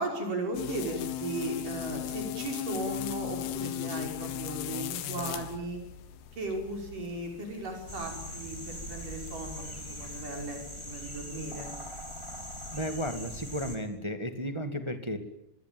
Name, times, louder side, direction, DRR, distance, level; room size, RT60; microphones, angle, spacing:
voice 1, 0.0-5.8 6.3-11.7, right 2 dB, 60° right, 3 dB, 7.0 m, -36 dB
sound 1, 0.5-10.2, left 11 dB, 85° left, 3.2 m, -38 dB
sound 2, 7.9-13.8, equal, 10° left, 3.3 m, -41 dB
voice 2, 12.7-15.2, equal, 15° right, 7 dB, 1.1 m, -34 dB
25.0 x 22.5 x 9.3 m, 0.78 s
omnidirectional pair, 4.3 m